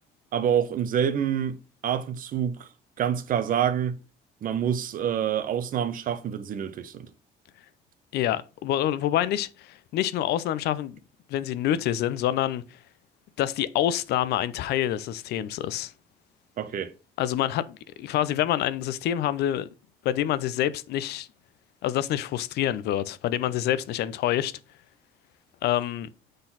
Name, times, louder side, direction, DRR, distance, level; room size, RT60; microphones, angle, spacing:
voice 1, 0.3-1.6 1.8-2.7 3.0-4.0 4.4-7.1 16.6-16.9, right 9 dB, 55° right, 0.9 m, -27 dB
voice 2, 8.1-11.0 11.3-12.6 13.4-15.9 17.2-19.7 20.0-21.3 21.8-24.5 25.6-26.1, left 12 dB, 75° left, 0.6 m, -27 dB
6.5 x 4.0 x 4.1 m
cardioid pair, 110°, 17 cm